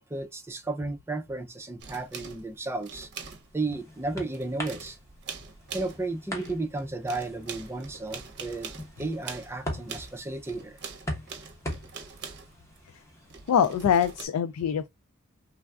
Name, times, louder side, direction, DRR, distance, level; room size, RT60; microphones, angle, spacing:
voice 1, 0.0-3.1 3.5-5.0 5.7-8.7 9.0-10.8, right 2 dB, 10° right, 0.4 m, -33 dB
sound 1, 1.8-3.8 4.1-6.1 6.4-12.8 13.3-14.3, right 6 dB, 50° right, 0.7 m, -43 dB
sound 2, 3.1-14.2, left 1 dB, 15° left, 0.9 m, -42 dB
voice 2, 13.5-14.9, left 8 dB, 80° left, 0.3 m, -24 dB
3.3 x 2.3 x 2.2 m
head